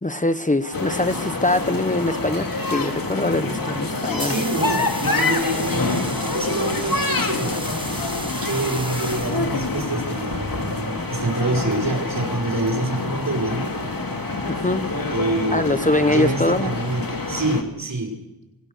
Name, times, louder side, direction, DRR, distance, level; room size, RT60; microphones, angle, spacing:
voice 1, 0.0-4.4 14.5-14.8 15.5-16.7, left 1 dB, 20° left, 10 dB, 1.1 m, -23 dB
sound 1, 0.6-17.4, right 4 dB, 75° right, 2.4 m, -41 dB
sound 2, 0.7-17.6, left 3 dB, 60° left, 2.7 m, -27 dB
sound 3, 3.9-9.9, right 1 dB, 15° right, 1.9 m, -35 dB
voice 2, 4.2-7.6 7.8-8.1 8.4-13.8 15.1-18.1, right 2 dB, 55° right, 1 dB, 5.6 m, -26 dB
26.0 x 17.0 x 6.8 m, 1.0 s
wide cardioid pair, 55°, 38 cm